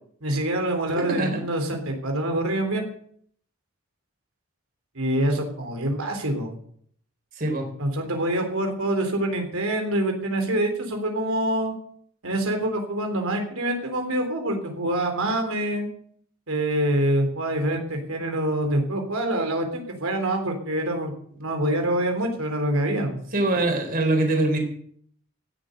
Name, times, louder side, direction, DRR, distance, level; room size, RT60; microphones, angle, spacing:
voice 1, 0.2-2.9 5.0-6.5 7.8-11.7 12.2-15.9 16.5-21.1 21.4-23.2, right 1 dB, 80° right, 3 dB, 3.7 m, -25 dB
voice 2, 1.0-1.4 7.4-7.7 23.3-24.6, right 2 dB, 40° right, 4 dB, 3.8 m, -23 dB
16.0 x 7.7 x 8.1 m, 0.62 s
head